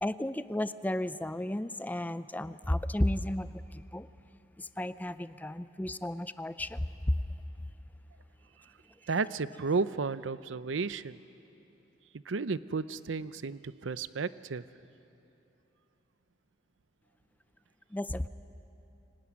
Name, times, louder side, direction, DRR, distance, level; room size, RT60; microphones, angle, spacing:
voice 1, 0.0-4.1 4.6-7.2 17.9-18.3, left 1 dB, 10° left, 13 dB, 0.5 m, -33 dB
voice 2, 9.1-11.2 12.3-14.6, right 4 dB, 85° right, 15 dB, 0.6 m, -33 dB
24.5 x 18.5 x 9.6 m, 3.0 s
head